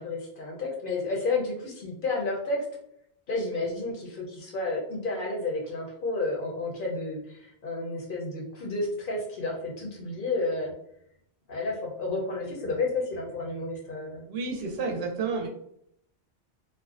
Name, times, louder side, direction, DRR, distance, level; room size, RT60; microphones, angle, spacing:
voice 1, 0.0-2.6 3.3-10.7 11.5-14.2, left 3 dB, 55° left, -2 dB, 0.7 m, -31 dB
voice 2, 14.3-15.5, right 4 dB, 70° right, 1 dB, 0.8 m, -30 dB
2.5 x 2.1 x 2.3 m, 0.72 s
omnidirectional pair, 1.1 m